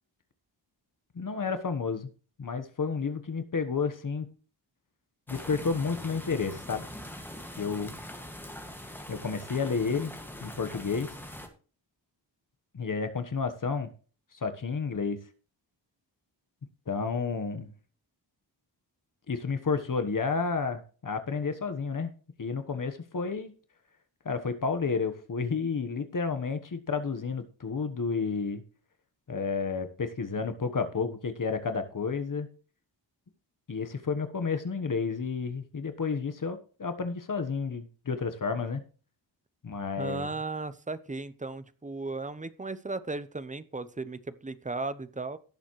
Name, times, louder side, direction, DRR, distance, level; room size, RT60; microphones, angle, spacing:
voice 1, 1.1-2.1 2.4-4.3 5.3-6.9 7.6-7.9 9.1-10.1 10.4-11.1 12.7-13.9 14.4-15.2 16.9-17.7 19.3-22.1 22.4-23.5 24.2-28.6 29.3-32.5 33.7-38.8 39.6-40.3, left 5 dB, 45° left, 8 dB, 1.2 m, -31 dB
sound 1, 5.3-11.5, left 1 dB, 5° left, 1.9 m, -43 dB
voice 2, 40.0-45.4, right 3 dB, 15° right, 14 dB, 0.7 m, -36 dB
17.0 x 7.1 x 3.2 m, 0.38 s
wide cardioid pair, 170°, 44 cm